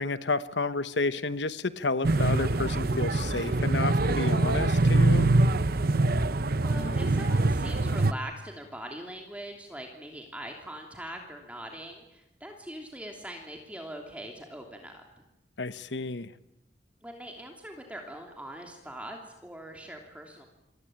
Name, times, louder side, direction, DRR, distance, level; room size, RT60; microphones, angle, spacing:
voice 1, 0.0-5.3 15.6-16.3, left 3 dB, 80° left, 14 dB, 1.1 m, -30 dB
sound 1, 2.0-8.1, right 2 dB, 60° right, 0.9 m, -24 dB
voice 2, 6.2-15.2 17.0-20.5, right 1 dB, 10° right, 2 dB, 3.0 m, -42 dB
28.0 x 22.0 x 8.9 m, 0.87 s
head